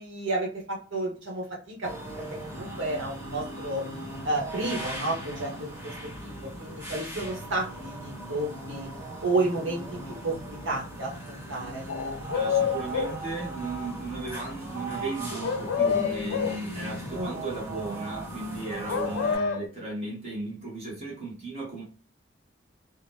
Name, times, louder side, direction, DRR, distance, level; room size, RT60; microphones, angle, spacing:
voice 1, 0.0-3.8 4.2-5.9 6.2-8.9 9.2-11.8 17.1-17.4, right 2 dB, 75° right, -2 dB, 1.0 m, -31 dB
sound 1, 1.8-19.3, right 1 dB, 10° right, 1.1 m, -38 dB
sound 2, 11.9-13.2 15.4-16.6 18.9-19.7, left 7 dB, 90° left, 0.3 m, -27 dB
voice 2, 12.3-21.8, right 2 dB, 35° right, -4 dB, 0.9 m, -35 dB
2.8 x 2.1 x 3.3 m, 0.38 s
head